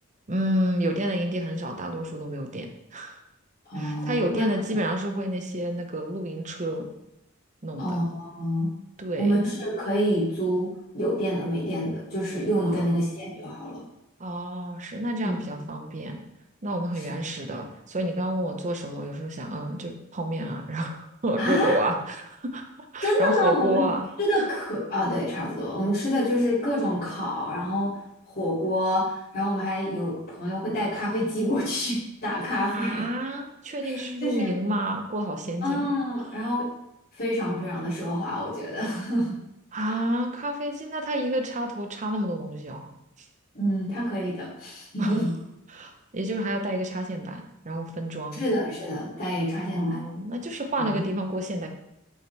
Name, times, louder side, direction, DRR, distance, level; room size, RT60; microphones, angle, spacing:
voice 1, 0.3-3.2 3.7-6.9 7.6-8.0 9.0-9.4 12.7-13.2 14.2-16.2 16.6-22.6 22.9-24.0 24.3-24.5 32.7-35.9 39.7-42.9 45.0-45.2 45.7-48.5 49.7-51.7, right 1 dB, 35° right, 4 dB, 0.8 m, -29 dB
voice 2, 3.6-4.5 7.8-8.7 9.2-10.7 10.9-13.8 15.2-15.4 21.4-21.8 23.0-23.8 24.2-28.0 28.3-33.0 33.8-34.5 35.6-36.7 37.2-39.4 43.5-45.3 48.4-50.0 50.8-51.0, equal, 45° left, -14 dB, 2.7 m, -27 dB
6.3 x 5.6 x 3.4 m, 0.85 s
head